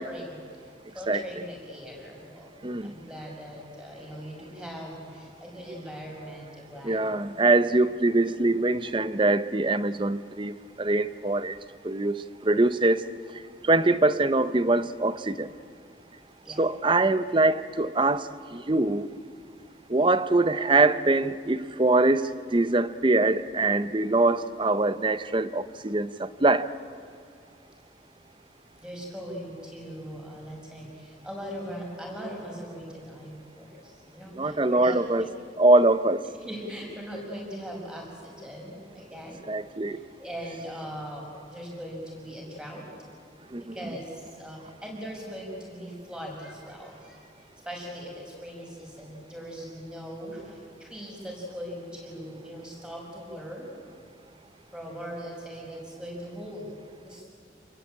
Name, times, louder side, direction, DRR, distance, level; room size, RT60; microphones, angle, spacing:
voice 1, 0.0-2.5 2.8-7.1 16.4-16.6 28.8-35.2 36.4-39.4 39.9-42.9 43.7-53.7 54.7-56.7 57.0-57.2, equal, 5° right, -1 dB, 6.4 m, -40 dB
voice 2, 6.8-11.6 11.8-13.0 13.6-15.5 16.6-19.1 19.9-26.7 34.4-35.3 35.6-36.2 39.5-40.0 43.5-43.7, right 2 dB, 25° right, 14 dB, 0.7 m, -23 dB
28.5 x 21.0 x 8.8 m, 2.3 s
head